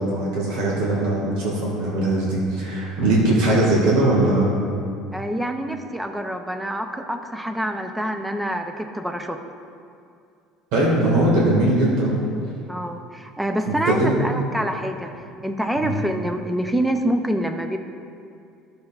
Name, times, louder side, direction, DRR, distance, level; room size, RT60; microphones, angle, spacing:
voice 1, 0.0-4.5 10.7-12.2 13.7-14.2 15.8-15.9, right 1 dB, 80° right, -4 dB, 1.6 m, -20 dB
voice 2, 5.1-9.4 12.7-17.8, equal, 5° right, 6 dB, 0.4 m, -26 dB
12.5 x 6.5 x 2.3 m, 2.4 s
cardioid pair, 170°, 0 cm